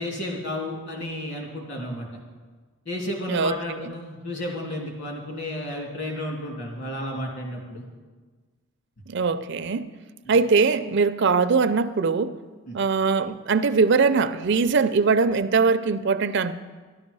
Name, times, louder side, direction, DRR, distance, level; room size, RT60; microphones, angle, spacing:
voice 1, 0.0-2.1 2.8-7.8 12.7-12.8, left 1 dB, 55° left, 3.0 m, -32 dB
voice 2, 3.3-3.8 9.1-9.9 10.3-12.3 12.7-16.5, right 4 dB, 55° right, 0.5 m, -21 dB
12.5 x 12.0 x 5.4 m
head